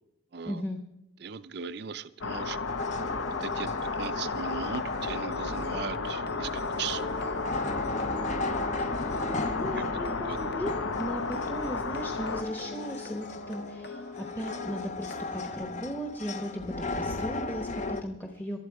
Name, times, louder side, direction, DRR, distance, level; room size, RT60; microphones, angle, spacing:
voice 1, 0.5-0.8 9.5-10.7 11.0-18.7, equal, 10° left, 3 dB, 1.0 m, -37 dB
voice 2, 1.2-2.6 3.4-7.1 10.3-10.4, right 6 dB, 55° right, 12 dB, 0.5 m, -38 dB
sound 1, 2.2-12.4, left 4 dB, 80° left, 0.9 m, -33 dB
sound 2, 2.7-18.0, left 2 dB, 35° left, 0.7 m, -37 dB
sound 3, 5.0-15.6, left 2 dB, 55° left, 1.2 m, -41 dB
19.5 x 12.5 x 4.7 m, 0.89 s
head